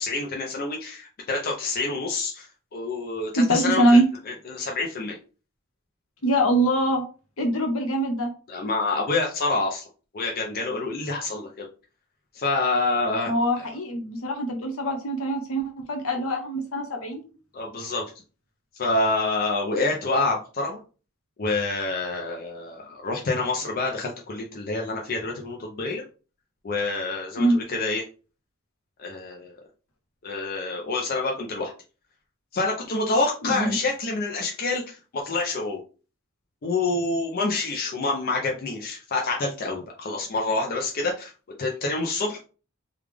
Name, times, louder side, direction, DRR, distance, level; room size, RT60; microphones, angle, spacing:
voice 1, 0.0-4.0 4.3-5.2 8.5-9.8 10.1-11.6 12.3-13.3 13.6-13.7 17.5-18.0 18.7-20.8 21.4-26.0 26.6-28.0 29.0-29.5 30.2-31.7 32.5-35.8 36.6-41.3 41.6-42.4, left 3 dB, 45° left, 0 dB, 0.5 m, -27 dB
voice 2, 3.4-4.0 6.2-7.0 7.4-8.3 13.3-17.2 27.4-27.6 33.5-33.7, right 1 dB, 70° left, 4 dB, 0.9 m, -23 dB
3.3 x 2.3 x 3.3 m, 0.36 s
head